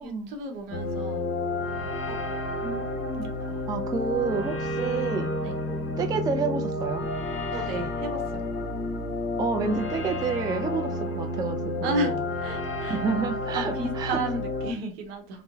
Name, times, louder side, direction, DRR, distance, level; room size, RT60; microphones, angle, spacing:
voice 1, 0.0-1.3 1.8-2.4 3.5-3.6 5.4-5.6 7.5-8.5 11.8-13.0 13.5-15.4, right 1 dB, 75° right, 0.8 m, -33 dB
sound 1, 0.7-14.7, left 2 dB, 40° left, 0.8 m, -30 dB
voice 2, 2.6-3.3 3.5-5.3 6.0-7.1 7.5-7.7 9.4-12.2 12.9-14.2, right 5 dB, 15° right, 0.3 m, -30 dB
2.9 x 2.0 x 2.2 m
hypercardioid pair, 75°, 30 cm